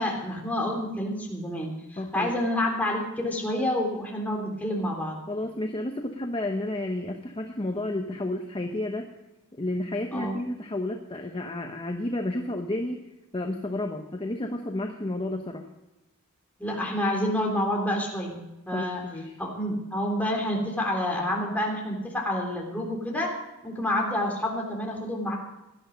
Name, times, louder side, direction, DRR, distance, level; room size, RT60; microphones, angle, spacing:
voice 1, 0.0-5.2 10.1-10.3 16.6-19.0 19.4-23.3 23.6-25.4, left 1 dB, 5° left, -1 dB, 3.5 m, -28 dB
voice 2, 2.0-2.3 5.3-9.1 9.6-13.0 13.3-15.7 18.7-19.4, left 1 dB, 25° left, 4 dB, 1.0 m, -31 dB
18.0 x 12.0 x 5.2 m, 1.0 s
head